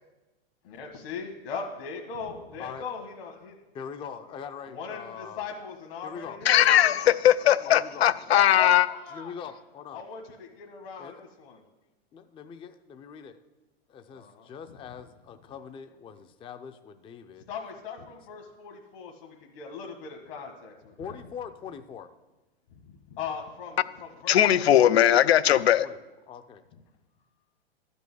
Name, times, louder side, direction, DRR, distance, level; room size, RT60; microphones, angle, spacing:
voice 1, 0.6-3.6 4.7-7.2 8.3-9.3 9.9-11.6 14.1-14.8 17.5-21.2 22.7-24.9, left 5 dB, 65° left, 2 dB, 1.6 m, -40 dB
voice 2, 3.7-5.5 6.0-6.4 7.7-8.1 9.1-10.0 11.0-11.3 12.1-13.4 13.9-17.5 21.0-22.1 25.8-26.0 26.3-26.7, left 7 dB, 15° left, 9 dB, 0.5 m, -42 dB
voice 3, 6.5-8.9 24.3-25.9, left 11 dB, 80° left, 15 dB, 0.6 m, -19 dB
12.0 x 5.4 x 8.0 m, 1.1 s
hypercardioid pair, 110°, 31 cm